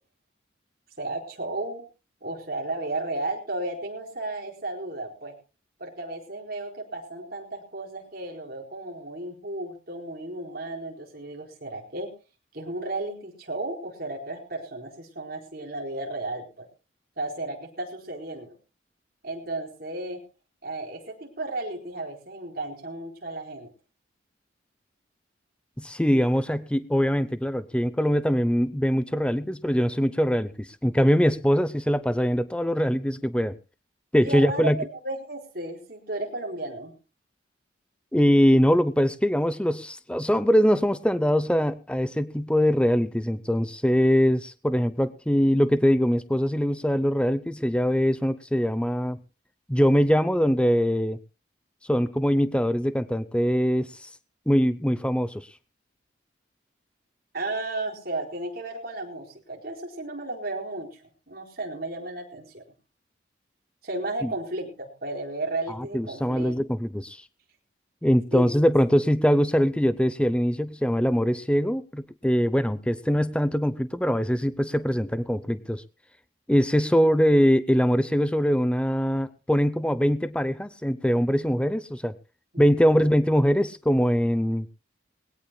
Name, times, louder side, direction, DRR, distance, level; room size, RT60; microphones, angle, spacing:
voice 1, 1.0-1.8 2.2-5.3 5.8-12.1 12.5-16.7 17.2-18.5 19.2-20.2 20.6-23.7 34.2-36.9 57.3-62.6 63.8-66.5 68.3-68.5 82.7-83.1, right 2 dB, 50° right, 1 dB, 4.4 m, -34 dB
voice 2, 25.8-33.6 34.1-34.8 38.1-49.2 49.7-51.2 51.9-54.1 54.5-55.5 64.2-64.3 65.7-67.2 68.0-75.8 76.5-82.1 82.6-84.7, equal, 5° left, 14 dB, 0.6 m, -22 dB
21.5 x 17.0 x 2.2 m, 0.32 s
head